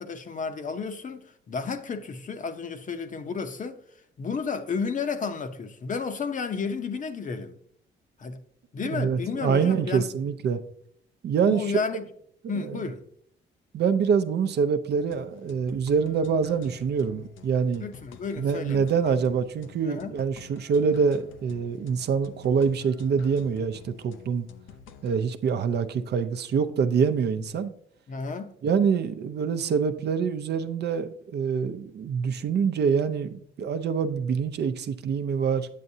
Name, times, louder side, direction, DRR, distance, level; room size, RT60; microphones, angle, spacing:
voice 1, 0.0-3.8 4.2-7.6 8.2-8.4 8.7-10.1 11.5-12.1 12.5-13.0 17.8-19.2 19.8-20.2 28.1-28.5, left 5 dB, 40° left, 0.7 m, -32 dB
voice 2, 8.9-10.6 11.2-11.6 12.5-12.9 13.7-17.8 18.4-24.5 25.0-27.7 28.6-35.7, right 6 dB, 55° right, 0.6 m, -25 dB
sound 1, 14.9-25.2, left 7 dB, 85° left, 0.6 m, -50 dB
8.3 x 7.6 x 2.7 m
cardioid pair, 90°, 20 cm